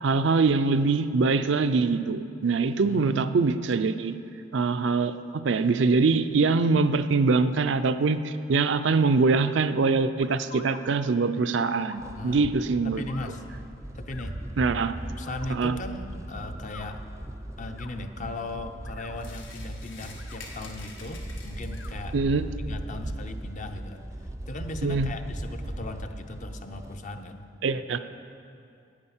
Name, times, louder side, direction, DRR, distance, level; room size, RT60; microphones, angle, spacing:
voice 1, 0.0-4.1 4.5-5.1 5.4-13.0 14.6-14.9 15.5-15.8 22.1-22.5 24.8-25.1 27.6-28.0, right 4 dB, 65° right, 10 dB, 0.5 m, -23 dB
voice 2, 2.8-3.4 12.2-12.5 12.8-13.5 13.9-14.4 15.2-17.0 17.6-22.2 22.7-24.1 24.5-27.5, left 1 dB, 40° left, 6 dB, 0.6 m, -37 dB
sound 1, 10.2-10.8 11.8-12.1 13.1-13.3 14.1-14.3 15.2-15.5 16.6-16.9 17.6-17.9 18.7-19.2 20.0-20.4 21.7-21.9, left 5 dB, 65° left, 0.9 m, -46 dB
sound 2, 12.0-27.0, right 1 dB, 15° right, 0.5 m, -38 dB
sound 3, 19.2-22.1, left 4 dB, 80° left, 1.5 m, -47 dB
9.8 x 8.6 x 7.1 m, 2.5 s
head